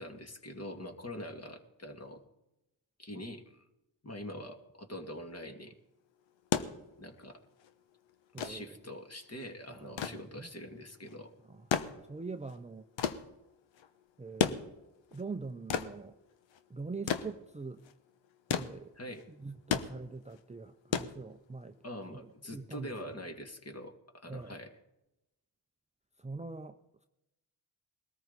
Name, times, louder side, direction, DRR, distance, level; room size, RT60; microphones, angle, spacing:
voice 1, 0.0-2.2 3.0-3.4 4.0-5.7 7.0-7.4 8.4-11.3 19.0-19.2 21.8-24.7, left 1 dB, 35° left, 4 dB, 2.4 m, -44 dB
sound 1, 6.3-21.8 23.0-23.1, left 8 dB, 75° left, 1.1 m, -36 dB
voice 2, 8.3-8.8 9.7-10.5 11.5-12.9 14.2-14.6 15.1-16.2 16.7-17.8 18.5-18.9 19.3-21.8 22.1-23.3 24.3-24.6 26.2-27.1, right 4 dB, 15° right, 7 dB, 0.7 m, -44 dB
20.5 x 13.5 x 4.1 m, 0.91 s
supercardioid pair, 55°, 46 cm